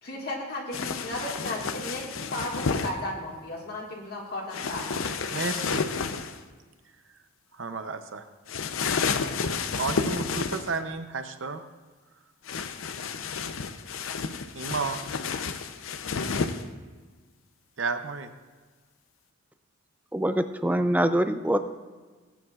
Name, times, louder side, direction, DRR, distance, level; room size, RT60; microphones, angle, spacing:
voice 1, 0.0-5.3, left 1 dB, 50° left, -3 dB, 1.8 m, -35 dB
sound 1, 0.7-2.9 4.5-6.4 8.5-10.8 12.4-16.6, left 5 dB, 85° left, 0.6 m, -31 dB
voice 2, 5.3-5.8 7.6-8.2 9.8-11.6 14.6-15.0 17.8-18.3, right 4 dB, 70° right, 8 dB, 0.6 m, -32 dB
voice 3, 20.1-21.6, right 1 dB, 10° right, 9 dB, 0.4 m, -24 dB
18.5 x 9.3 x 2.4 m, 1.4 s
head